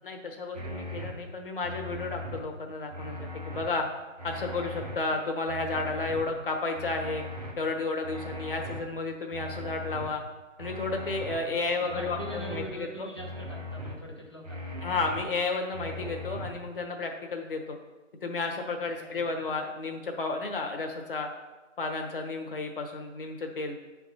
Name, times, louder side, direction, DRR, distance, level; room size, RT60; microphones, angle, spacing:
voice 1, 0.0-3.8 4.2-7.2 7.6-10.2 10.6-13.1 14.8-17.8 18.2-21.3 21.8-23.8, left 3 dB, 45° left, 3 dB, 1.0 m, -32 dB
sound 1, 0.5-1.1 1.6-2.4 2.9-3.7 4.2-5.0 5.5-6.2 6.7-7.5 8.0-8.8 9.3-10.1 10.6-11.4 11.9-12.7 13.2-13.9 14.4-15.2 15.7-16.5, left 1 dB, 30° right, 0.7 m, -39 dB
voice 2, 11.0-14.8 19.0-19.4, equal, 20° left, -2 dB, 0.6 m, -43 dB
9.1 x 3.6 x 4.0 m, 1.1 s
figure-of-eight pair, 155°, 39 cm